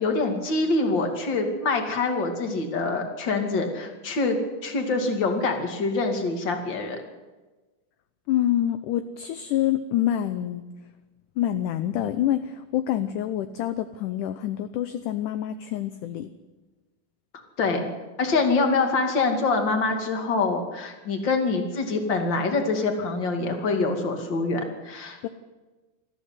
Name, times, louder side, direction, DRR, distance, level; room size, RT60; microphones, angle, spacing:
voice 1, 0.0-7.0 17.6-17.9 18.2-25.3, left 3 dB, 35° left, 4 dB, 2.7 m, -25 dB
voice 2, 8.3-10.6 11.4-16.3 25.2-25.3, left 12 dB, 75° left, 10 dB, 2.1 m, -26 dB
20.0 x 14.0 x 9.6 m, 1.2 s
omnidirectional pair, 4.2 m